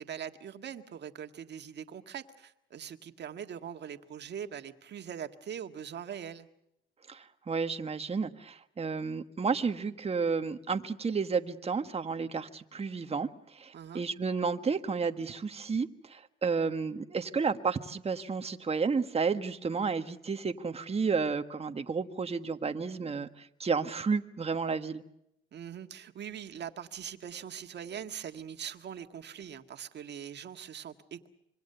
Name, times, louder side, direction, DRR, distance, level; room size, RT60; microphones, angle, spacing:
voice 1, 0.0-6.5 13.7-14.0 25.5-31.3, right 8 dB, 60° right, 7 dB, 1.8 m, -42 dB
voice 2, 7.1-25.0, right 5 dB, 30° right, 8 dB, 1.4 m, -32 dB
26.5 x 23.5 x 6.8 m, 0.79 s
cardioid pair, 90°, 20 cm